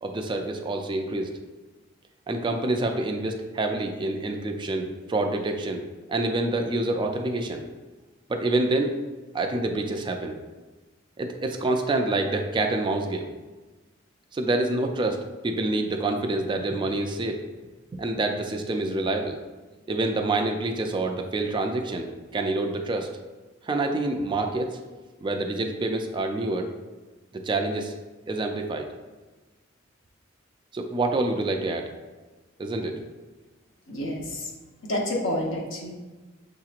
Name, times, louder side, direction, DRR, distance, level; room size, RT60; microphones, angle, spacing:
voice 1, 0.0-1.3 2.3-5.8 6.1-7.6 8.3-8.9 9.3-10.4 11.2-13.3 14.3-17.4 18.0-19.4 19.9-22.1 22.3-23.1 23.6-24.8 25.2-26.7 27.4-27.9 28.3-28.9 30.7-31.9 32.6-33.0, right 2 dB, 25° right, 4 dB, 0.3 m, -27 dB
voice 2, 33.9-34.5 34.8-35.9, left 1 dB, 70° left, -1 dB, 0.8 m, -29 dB
6.5 x 2.9 x 2.4 m, 1.2 s
head